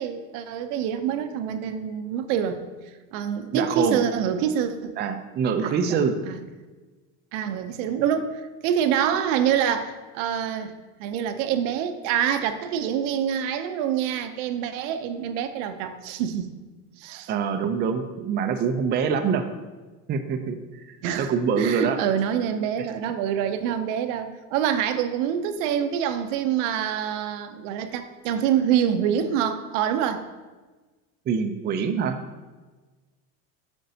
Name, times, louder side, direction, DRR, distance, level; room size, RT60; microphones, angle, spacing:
voice 1, 0.0-2.6 3.1-4.9 5.6-6.0 6.3-6.4 7.3-16.5 17.0-17.3 21.0-30.3, right 9 dB, 75° right, 9 dB, 0.7 m, -26 dB
voice 2, 3.5-4.0 5.0-6.1 17.3-19.5 20.1-20.8 21.2-22.0 22.8-22.9 31.3-32.2, right 6 dB, 30° right, 6 dB, 0.4 m, -25 dB
7.6 x 5.3 x 2.7 m, 1.3 s
supercardioid pair, 115°, 38 cm